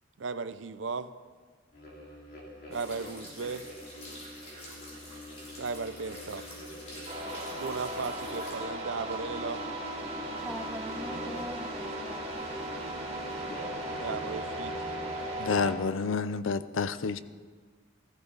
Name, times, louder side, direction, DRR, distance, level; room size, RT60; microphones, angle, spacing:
voice 1, 0.2-1.1 2.7-3.6 5.6-6.4 7.5-9.6 14.0-14.7, right 4 dB, 70° right, 13 dB, 0.6 m, -36 dB
sound 1, 1.7-15.2, left 1 dB, 50° left, 3.1 m, -46 dB
sound 2, 2.7-8.6, equal, 35° left, 3.4 m, -47 dB
sound 3, 7.1-15.7, right 1 dB, 30° right, 2.8 m, -37 dB
voice 2, 10.4-12.7, equal, ahead, 7 dB, 0.6 m, -42 dB
voice 3, 15.4-17.2, left 5 dB, 85° left, 14 dB, 0.6 m, -29 dB
15.5 x 14.5 x 4.1 m, 1.5 s
head